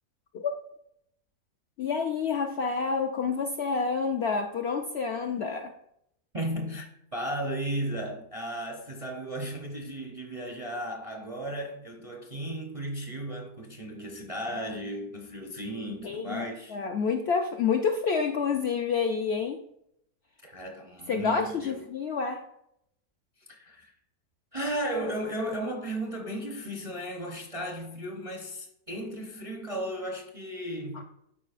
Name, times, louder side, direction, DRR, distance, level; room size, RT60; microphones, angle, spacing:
voice 1, 1.8-5.7 16.0-16.4 16.7-19.6 21.1-22.5, left 5 dB, 65° left, 0.6 m, -28 dB
voice 2, 6.3-16.8 20.4-21.9 23.5-23.9 24.5-31.0, right 1 dB, 35° right, 0.5 m, -35 dB
12.0 x 4.8 x 2.4 m
omnidirectional pair, 1.6 m